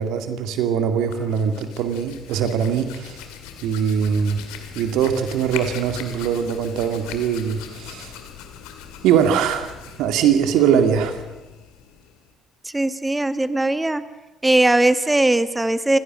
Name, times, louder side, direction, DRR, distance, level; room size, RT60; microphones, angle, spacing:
voice 1, 0.0-3.3 3.6-4.4 4.7-8.1 9.0-9.7 10.0-11.2, right 8 dB, 70° right, 7 dB, 2.2 m, -21 dB
Hands, 0.9-12.3, left 8 dB, 75° left, 2.2 m, -40 dB
voice 2, 12.6-14.0 14.4-16.0, right 2 dB, 15° right, 12 dB, 1.6 m, -19 dB
26.5 x 16.0 x 6.4 m, 1.1 s
hypercardioid pair, 50°, 0 cm